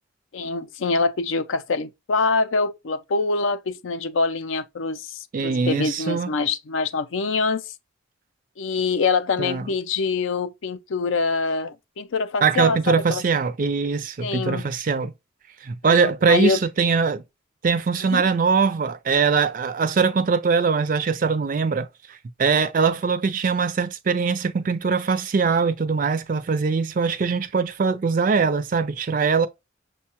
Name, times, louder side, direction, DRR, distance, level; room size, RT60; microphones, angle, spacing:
voice 1, 0.3-7.7 8.6-13.2 14.2-14.7 15.8-16.6 18.0-18.3, left 4 dB, 75° left, 0.5 m, -25 dB
voice 2, 5.3-6.3 9.4-9.7 12.4-15.1 15.6-17.2 17.6-29.5, right 5 dB, 45° right, 0.4 m, -22 dB
6.3 x 2.2 x 2.8 m
head